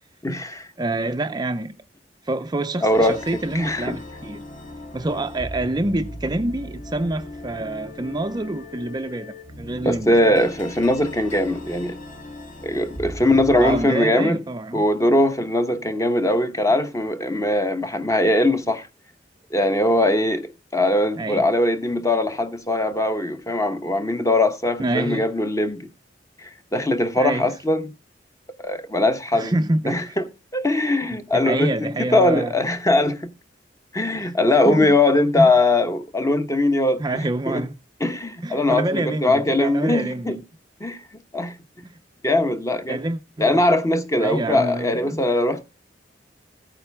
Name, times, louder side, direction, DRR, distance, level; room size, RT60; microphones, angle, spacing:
voice 1, 0.2-0.7 2.8-3.2 3.5-4.0 9.8-12.0 12.6-14.4 14.7-18.9 19.5-25.9 26.4-27.9 28.6-29.5 29.9-33.3 33.9-37.0 37.5-37.6 38.0-40.4 40.8-41.0 41.3-41.5 42.2-43.0 43.4-45.6, left 1 dB, 20° left, 1.0 m, -21 dB
voice 2, 0.8-1.8 2.2-4.4 4.9-10.2 13.6-14.8 21.2-21.5 24.8-25.3 27.2-27.5 29.3-30.2 31.1-32.5 34.1-34.3 34.6-34.9 35.3-35.5 37.0-37.7 38.4-40.4 41.8-42.0 42.9-43.6 44.2-45.2, right 2 dB, 25° right, 0.5 m, -27 dB
sound 1, 2.9-13.9, left 1 dB, 45° left, 2.1 m, -38 dB
14.5 x 8.9 x 3.4 m
head